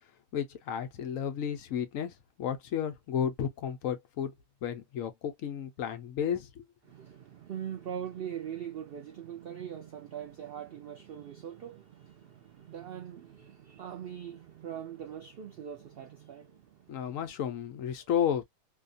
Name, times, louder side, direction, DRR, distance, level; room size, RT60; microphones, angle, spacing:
voice 1, 0.3-4.3 4.6-6.6 16.9-18.4, left 8 dB, 70° left, 0.9 m, -32 dB
voice 2, 6.9-17.2, right 9 dB, 85° right, 0.5 m, -42 dB
2.7 x 2.3 x 2.5 m
omnidirectional pair, 1.6 m